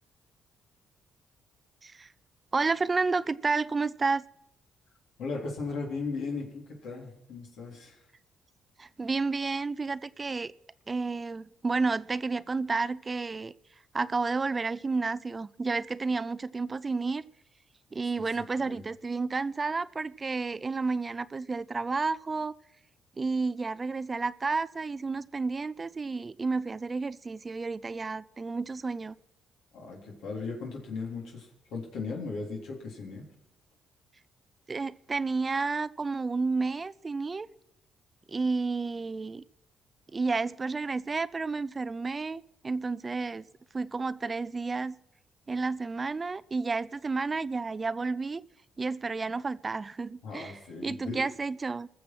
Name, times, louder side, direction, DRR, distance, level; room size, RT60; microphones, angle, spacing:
voice 1, 2.5-4.2 8.8-10.5 10.9-13.5 13.9-17.2 17.9-22.5 23.2-29.2 34.7-37.5 38.3-39.4 40.1-43.5 43.7-44.9 45.5-48.4 48.8-50.5 50.8-51.9, right 4 dB, 30° right, 0.4 m, -31 dB
voice 2, 5.2-8.0 18.2-18.3 18.6-18.8 29.7-33.3 50.2-51.3, left 4 dB, 80° left, 3.6 m, -37 dB
21.0 x 7.1 x 6.1 m
cardioid pair, 90°, 0 cm